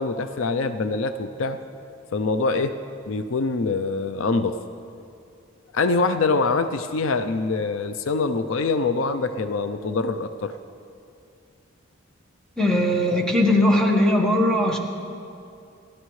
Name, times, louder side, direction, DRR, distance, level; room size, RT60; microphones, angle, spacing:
voice 1, 0.0-1.6 2.1-2.8 3.1-4.6 5.7-10.5, left 3 dB, 65° left, 9 dB, 0.5 m, -24 dB
voice 2, 12.6-14.8, left 1 dB, 5° left, -1 dB, 1.3 m, -19 dB
29.5 x 11.5 x 3.2 m, 2.5 s
head